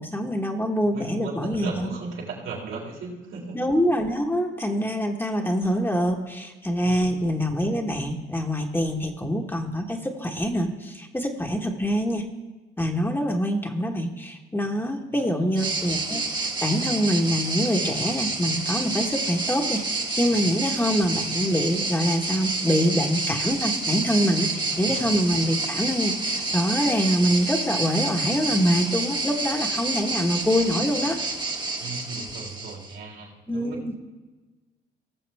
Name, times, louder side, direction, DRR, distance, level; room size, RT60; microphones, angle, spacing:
voice 1, 0.0-1.9 3.5-12.3 12.8-31.2 33.5-33.9, equal, 10° left, 1 dB, 1.3 m, -25 dB
voice 2, 0.9-3.6 6.8-7.2 15.2-15.6 24.6-25.0 31.8-33.8, right 3 dB, 80° right, -3 dB, 3.9 m, -37 dB
sound 1, 15.6-32.9, right 3 dB, 20° right, 1.4 m, -29 dB
19.0 x 7.1 x 3.5 m, 1.2 s
cardioid pair, 90°, 20 cm